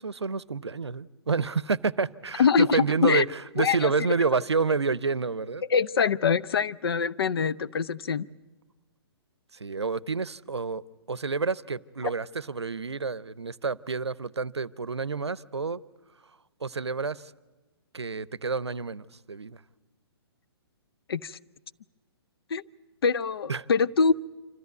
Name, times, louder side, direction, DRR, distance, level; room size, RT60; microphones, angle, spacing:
voice 1, 0.0-5.6 9.5-15.8 16.6-17.3 17.9-19.6 23.5-23.7, right 4 dB, 90° right, 0.6 m, -29 dB
voice 2, 2.4-3.2 3.6-3.9 5.7-8.3 12.0-12.1 21.1-21.4 22.5-22.6 23.0-24.1, left 6 dB, 65° left, 0.6 m, -24 dB
26.5 x 14.0 x 9.3 m
figure-of-eight pair, 130°, 14 cm